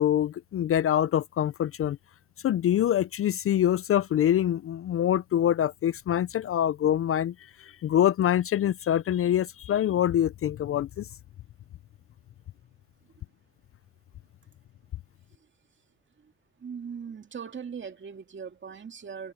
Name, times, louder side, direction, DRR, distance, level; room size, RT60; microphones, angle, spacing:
voice 1, 0.0-2.0 2.4-11.1, left 11 dB, 50° left, 0.5 m, -25 dB
voice 2, 16.6-19.3, right 6 dB, 40° right, 2.3 m, -39 dB
cardioid pair, 90°, 30 cm